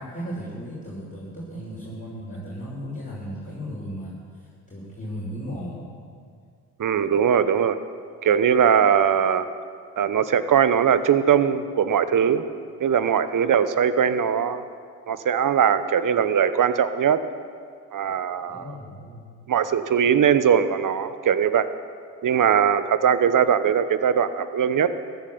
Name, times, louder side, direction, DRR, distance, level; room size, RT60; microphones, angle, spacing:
voice 1, 0.0-5.9 18.5-19.3, equal, 15° left, -7 dB, 4.8 m, -36 dB
voice 2, 6.8-7.8 8.2-9.5 10.0-12.4 12.8-14.6 15.1-17.2 17.9-18.6 19.5-21.7 22.2-24.9, right 8 dB, 40° right, 13 dB, 1.0 m, -20 dB
14.5 x 10.5 x 6.9 m, 2.1 s
hypercardioid pair, 50°, 47 cm